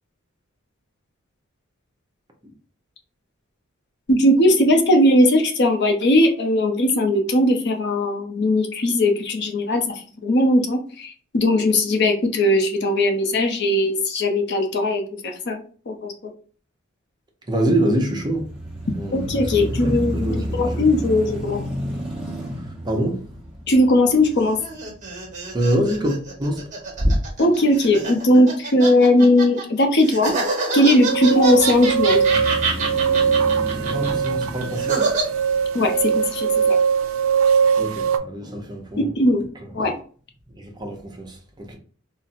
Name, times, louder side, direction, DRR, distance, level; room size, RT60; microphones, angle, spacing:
voice 1, 4.1-15.6 15.9-16.1 19.1-20.3 20.6-21.6 23.7-24.6 27.4-30.4 30.7-32.2 35.7-36.8 39.0-39.4 39.7-39.9, left 1 dB, 55° left, 0.6 m, -18 dB
voice 2, 17.5-18.5 18.9-20.9 22.5-23.3 25.5-26.7 26.9-27.2 33.8-35.3 37.8-39.1 39.6-39.7 40.5-41.8, right 1 dB, 20° right, 0.6 m, -25 dB
sound 1, 18.2-26.4 26.9-27.0 31.5-36.0, equal, 5° right, 1.0 m, -32 dB
sound 2, 24.2-29.6 30.0-35.2, right 3 dB, 40° right, 1.2 m, -27 dB
sound 3, 30.9-38.2, right 6 dB, 70° right, 0.3 m, -21 dB
4.0 x 2.0 x 2.5 m
head